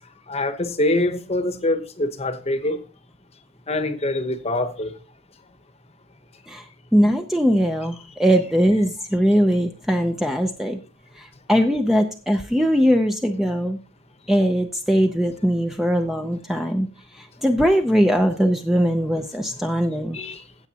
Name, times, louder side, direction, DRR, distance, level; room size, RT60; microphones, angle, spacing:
voice 1, 0.3-2.8 3.7-4.9 20.1-20.4, left 2 dB, 30° left, 1.0 m, -24 dB
voice 2, 6.9-10.8 11.2-13.8 14.3-16.9 17.1-20.2, equal, ahead, 0.6 m, -20 dB
15.5 x 8.0 x 2.9 m
head